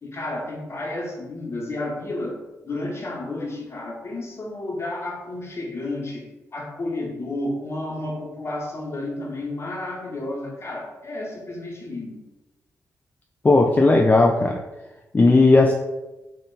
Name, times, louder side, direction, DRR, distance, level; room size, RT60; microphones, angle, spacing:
voice 1, 0.0-2.4 2.6-6.3 6.5-12.2, left 2 dB, 45° left, 0 dB, 1.1 m, -31 dB
voice 2, 13.4-14.6 15.1-15.7, left 2 dB, 25° left, 1 dB, 0.4 m, -15 dB
3.8 x 2.5 x 4.0 m, 1.0 s
cardioid pair, 75°, 6 cm